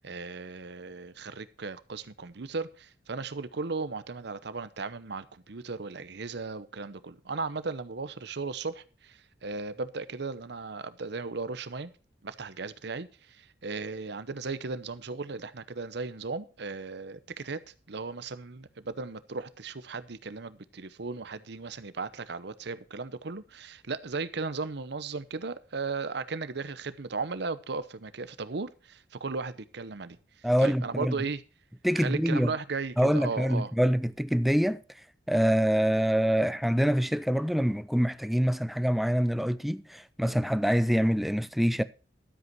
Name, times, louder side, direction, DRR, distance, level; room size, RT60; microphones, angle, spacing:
voice 1, 0.0-11.9 12.2-17.6 17.9-30.2 30.6-31.4 32.0-33.7, right 4 dB, 65° right, 0.8 m, -36 dB
voice 2, 30.4-31.1 31.8-32.5 33.0-34.8 35.3-41.8, equal, ahead, 0.5 m, -25 dB
12.5 x 8.0 x 4.6 m
head